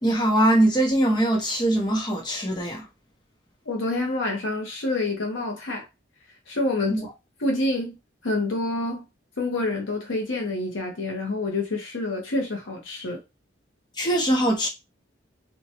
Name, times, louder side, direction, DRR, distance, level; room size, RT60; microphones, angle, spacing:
voice 1, 0.0-2.9 6.9-7.0 14.0-14.7, right 1 dB, 20° left, 0.8 m, -22 dB
voice 2, 3.7-5.9 6.5-7.0 7.4-8.0 8.2-9.0 9.4-13.2, left 2 dB, 90° left, 0.9 m, -27 dB
2.8 x 2.3 x 2.7 m
head